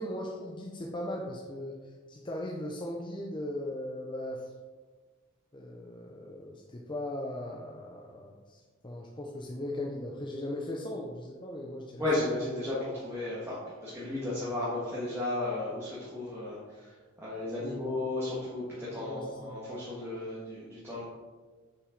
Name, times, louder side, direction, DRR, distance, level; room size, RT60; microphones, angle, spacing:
voice 1, 0.0-4.5 5.5-12.0 17.6-17.9 18.9-19.5, left 1 dB, 25° left, -1 dB, 0.6 m, -38 dB
voice 2, 12.0-21.0, left 2 dB, 10° right, -9 dB, 1.6 m, -34 dB
6.5 x 5.7 x 3.9 m, 1.4 s
head